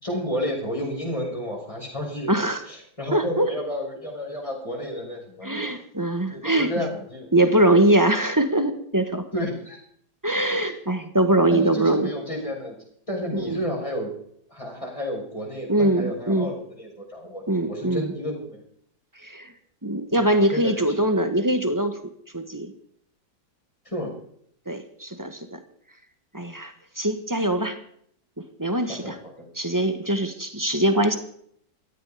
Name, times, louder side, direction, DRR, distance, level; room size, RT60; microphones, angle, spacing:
voice 1, 0.0-2.3 2.7-5.7 6.3-7.3 9.3-9.8 10.6-10.7 11.5-12.8 13.1-14.1 14.5-18.6 20.1-21.4 23.8-24.1 28.8-29.5, equal, 20° left, 0 dB, 6.1 m, -31 dB
voice 2, 2.3-2.6 3.1-3.5 5.4-6.7 7.3-9.2 10.2-12.1 13.3-13.6 15.7-16.5 17.5-18.1 19.2-19.5 19.8-21.9 22.3-22.7 24.7-25.6 26.3-27.8 28.6-29.2 29.6-31.2, right 1 dB, 10° right, 9 dB, 1.6 m, -22 dB
17.5 x 14.0 x 5.1 m, 0.66 s
omnidirectional pair, 1.8 m